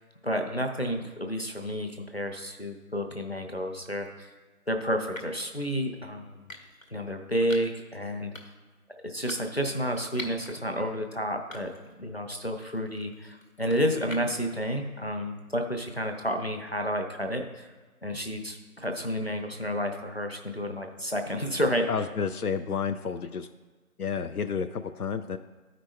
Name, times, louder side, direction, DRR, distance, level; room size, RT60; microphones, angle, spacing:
voice 1, 0.2-4.3 4.7-6.5 6.9-8.3 9.0-11.7 12.0-17.7 18.0-21.9, equal, 45° left, 3 dB, 0.7 m, -30 dB
sound 1, 3.8-4.1 5.1-5.5 6.5-6.9 7.5-7.8 8.3-8.7 9.3-10.5 11.0-11.1 11.5-12.0 12.3-14.5, left 1 dB, 65° left, 1.3 m, -45 dB
voice 2, 21.9-23.5 24.0-25.4, left 6 dB, 85° left, 9 dB, 0.5 m, -30 dB
13.5 x 5.1 x 2.2 m, 1.3 s
figure-of-eight pair, 180°, 44 cm